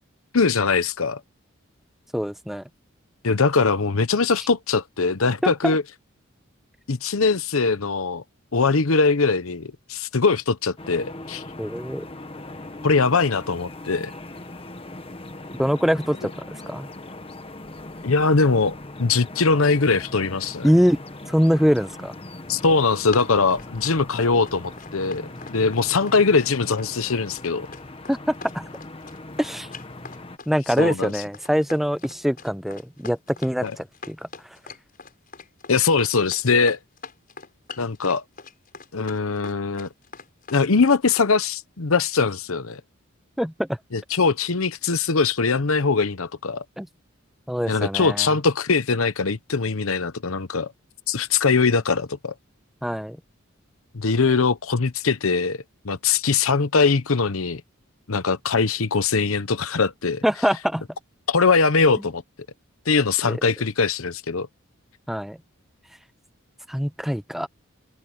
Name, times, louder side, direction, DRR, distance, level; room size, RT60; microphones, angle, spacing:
voice 1, 0.3-1.2 3.2-5.8 6.9-8.2 8.5-11.4 12.8-14.1 18.0-20.7 22.5-27.7 30.8-31.1 33.6-33.7 35.7-36.8 37.8-38.2 38.9-39.9 40.5-42.8 43.9-46.6 47.7-50.7 51.1-52.3 53.9-55.6 55.8-57.6 58.1-60.2 61.3-62.2 62.9-64.5, left 4 dB, 80° left, 0.9 m, -21 dB
voice 2, 2.1-2.6 5.4-5.7 11.6-12.0 15.6-16.9 20.6-21.0 21.3-22.1 28.1-28.2 28.5-28.6 29.4-29.7 30.5-34.2 43.4-43.8 46.8-46.9 47.5-48.3 52.8-53.2 60.2-60.8 63.3-63.4 65.1-65.4 66.7-67.5, equal, ahead, 0.7 m, -23 dB
sound 1, 10.8-30.4, left 2 dB, 25° left, 1.3 m, -40 dB
Run, 22.8-41.3, left 5 dB, 40° left, 6.7 m, -42 dB
open air
head